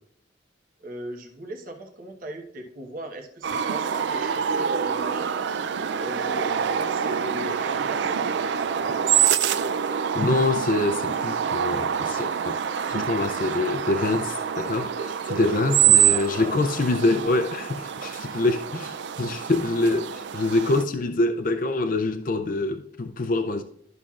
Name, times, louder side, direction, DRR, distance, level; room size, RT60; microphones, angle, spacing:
voice 1, 0.8-5.3 5.9-8.4 15.7-16.7 20.0-20.1, right 1 dB, 50° right, 1.1 m, -38 dB
sound 1, 3.4-20.8, right 8 dB, 65° right, 0.4 m, -26 dB
voice 2, 10.1-12.6 12.9-23.6, left 2 dB, 45° left, 0.5 m, -25 dB
12.5 x 5.9 x 2.4 m
head